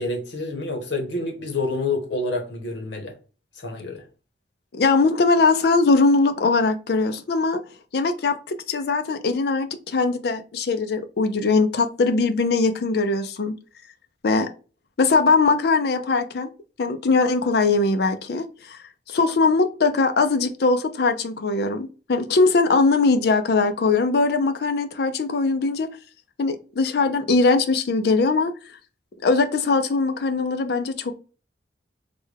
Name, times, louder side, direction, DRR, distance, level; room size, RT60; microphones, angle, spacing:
voice 1, 0.0-3.1 3.6-4.0, left 2 dB, 80° left, 1.0 m, -28 dB
voice 2, 4.7-7.6 7.9-13.5 14.2-14.5 15.0-16.5 16.8-18.8 19.1-25.9 26.4-28.5 29.2-31.1, left 3 dB, 60° left, 0.4 m, -21 dB
3.4 x 2.2 x 3.3 m
head